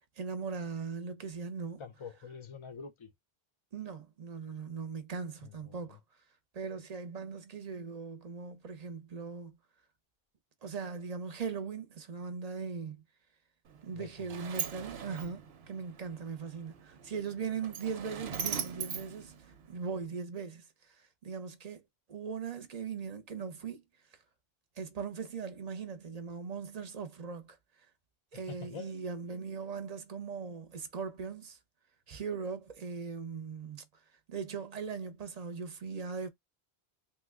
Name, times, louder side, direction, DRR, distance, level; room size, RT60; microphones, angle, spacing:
voice 1, 0.2-1.8 3.7-6.0 6.5-9.6 10.6-13.0 13.8-21.8 22.1-23.8 24.8-27.6 28.3-31.6 32.1-33.8 34.3-36.3, right 5 dB, 45° right, 0.6 m, -39 dB
voice 2, 1.8-3.1 5.4-6.0 13.9-14.5 28.3-29.0, left 6 dB, 40° left, 0.4 m, -47 dB
Sliding door, 13.7-20.1, right 8 dB, 80° right, 0.9 m, -41 dB
3.0 x 2.1 x 3.5 m
omnidirectional pair, 1.0 m